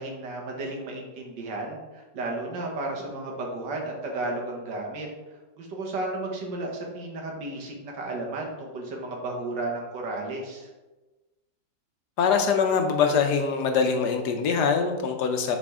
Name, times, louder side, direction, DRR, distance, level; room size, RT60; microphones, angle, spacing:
voice 1, 0.0-5.1 5.6-10.7, right 2 dB, 75° right, 0 dB, 1.8 m, -33 dB
voice 2, 12.2-15.6, left 5 dB, 70° left, 4 dB, 1.2 m, -23 dB
7.3 x 4.3 x 3.6 m, 1.1 s
omnidirectional pair, 2.0 m